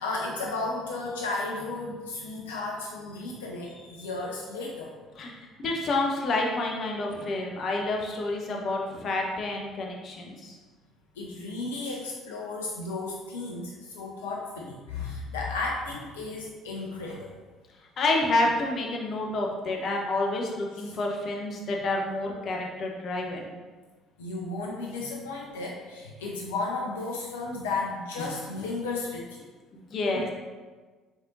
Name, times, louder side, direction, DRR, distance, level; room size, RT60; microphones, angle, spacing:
voice 1, 0.0-4.9 11.2-17.3 20.9-21.0 24.2-29.5 30.1-30.3, left 3 dB, 80° left, -2 dB, 0.5 m, -34 dB
voice 2, 5.2-10.6 18.0-23.5 29.7-30.3, left 2 dB, 50° left, 0 dB, 0.8 m, -29 dB
5.2 x 3.6 x 2.6 m, 1.3 s
figure-of-eight pair, 55°, 0 cm